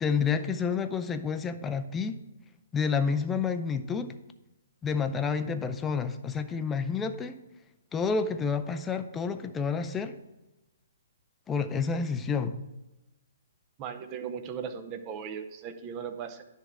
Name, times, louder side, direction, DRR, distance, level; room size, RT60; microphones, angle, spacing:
voice 1, 0.0-2.2 2.7-4.1 4.8-7.4 7.9-10.1 11.5-12.6, left 5 dB, 15° left, 8 dB, 0.5 m, -29 dB
voice 2, 13.8-16.4, right 7 dB, 30° right, 8 dB, 0.7 m, -37 dB
10.0 x 3.4 x 5.9 m, 1.0 s
figure-of-eight pair, 125°, 0 cm